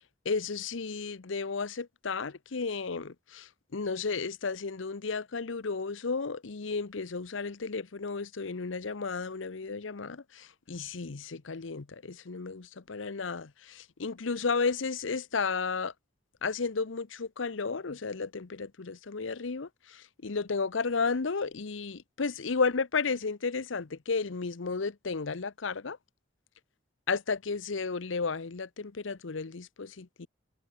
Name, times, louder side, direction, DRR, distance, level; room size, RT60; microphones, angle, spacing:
voice 1, 0.2-15.9 16.4-26.0 27.1-30.3, left 4 dB, 80° left, 0.8 m, -33 dB
head